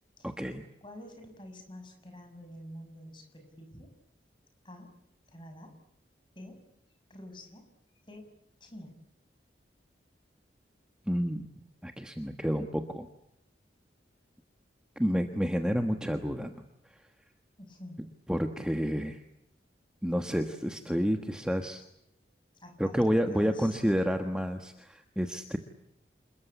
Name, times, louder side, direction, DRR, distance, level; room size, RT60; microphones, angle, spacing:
voice 1, 0.2-0.6 11.1-11.5 11.8-13.1 15.0-16.7 18.3-19.2 20.0-21.8 22.8-25.6, equal, 5° right, 5 dB, 1.4 m, -29 dB
voice 2, 0.8-3.9 4.6-4.9 5.3-5.8 6.3-6.6 7.1-7.6 8.1-8.3 8.6-9.0 17.6-18.1 22.5-24.2, left 1 dB, 25° left, 5 dB, 6.5 m, -48 dB
28.0 x 21.5 x 8.4 m, 0.78 s
head